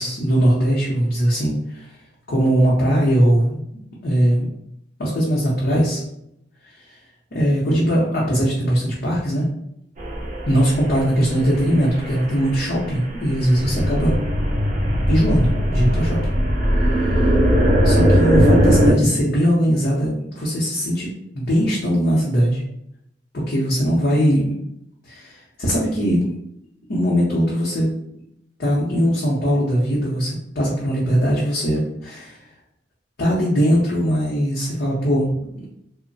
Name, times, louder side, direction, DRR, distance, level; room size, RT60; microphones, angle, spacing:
voice 1, 0.0-2.0 2.3-3.6 4.0-4.5 5.0-6.0 6.9-7.0 7.3-9.5 10.5-14.1 15.1-16.2 16.8-16.9 17.8-22.6 23.3-24.5 25.1-26.3 26.9-27.9 28.6-32.4 33.2-35.3 35.5-35.7, equal, 55° left, -6 dB, 0.7 m, -20 dB
sound 1, 10.0-18.9, equal, 45° right, 0.7 m, -19 dB
3.0 x 2.0 x 2.6 m, 0.76 s
head